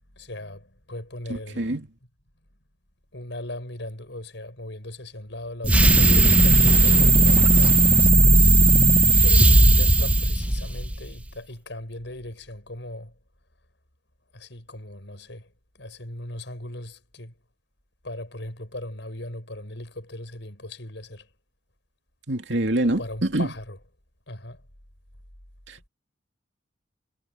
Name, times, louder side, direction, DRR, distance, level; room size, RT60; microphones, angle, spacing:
voice 1, 0.1-1.8 3.1-8.8 9.1-13.1 14.3-15.5 15.8-17.3 18.0-21.3 22.8-23.8 24.3-24.6, left 1 dB, 70° left, 6.4 m, -38 dB
voice 2, 1.3-1.9 22.3-23.5 25.7-25.9, right 1 dB, 70° right, 2.6 m, -26 dB
sound 1, 5.6-11.1, right 2 dB, 5° right, 0.9 m, -16 dB
head